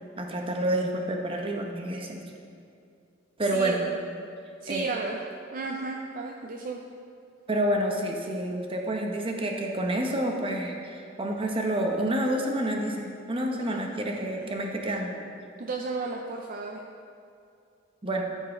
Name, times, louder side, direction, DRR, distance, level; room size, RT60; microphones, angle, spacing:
voice 1, 0.2-2.2 3.4-3.8 4.7-4.9 7.5-15.2 18.0-18.2, right 1 dB, 30° right, 1 dB, 0.9 m, -28 dB
voice 2, 4.6-5.2 5.5-6.8 13.5-13.6 14.2-14.5 15.6-16.8, right 3 dB, 45° right, 1 dB, 0.5 m, -34 dB
13.0 x 4.6 x 4.4 m, 2.5 s
head